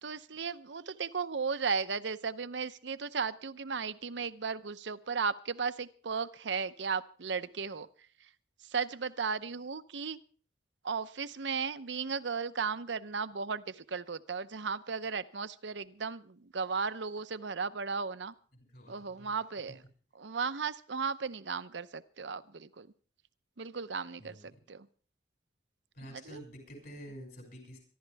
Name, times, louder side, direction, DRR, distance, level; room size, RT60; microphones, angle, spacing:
voice 1, 0.0-7.9 8.6-10.2 10.8-18.3 18.9-19.8 20.1-22.9 23.6-24.9 26.0-26.4, right 5 dB, 75° right, 13 dB, 0.8 m, -35 dB
voice 2, 18.7-19.7 24.2-24.5 25.9-27.8, equal, 55° left, 2 dB, 6.1 m, -49 dB
24.5 x 12.0 x 3.5 m, 0.43 s
head